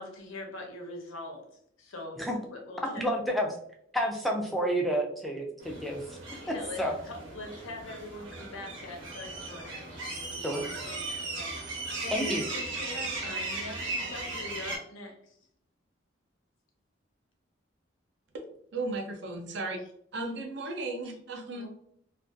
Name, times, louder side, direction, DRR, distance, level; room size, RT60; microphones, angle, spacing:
voice 1, 0.0-3.0 6.4-11.5 12.0-15.4 21.5-21.7, left 2 dB, 85° left, 2 dB, 0.7 m, -43 dB
voice 2, 3.0-3.5 3.9-6.2 6.8-6.9 10.4-10.6 12.1-12.4, equal, ahead, 0 dB, 0.3 m, -29 dB
sound 1, 5.6-14.8, right 2 dB, 80° right, 0.8 m, -37 dB
voice 3, 18.7-19.8 20.1-21.7, right 2 dB, 60° right, 4 dB, 0.4 m, -35 dB
2.4 x 2.2 x 2.5 m, 0.69 s
head